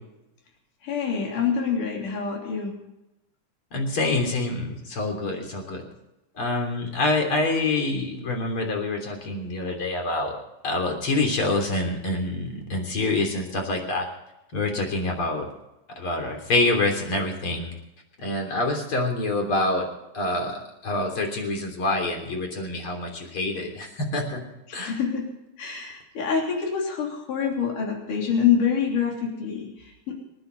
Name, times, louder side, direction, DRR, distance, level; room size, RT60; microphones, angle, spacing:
voice 1, 0.8-2.7 24.7-25.3 25.6-30.2, left 7 dB, 75° left, 0 dB, 4.7 m, -26 dB
voice 2, 3.7-5.8 6.3-10.4 10.6-14.1 14.5-15.5 15.9-17.7 18.2-19.9 20.1-24.4 24.7-25.0, left 2 dB, 40° left, 3 dB, 4.0 m, -26 dB
27.5 x 10.0 x 4.0 m, 0.92 s
omnidirectional pair, 3.7 m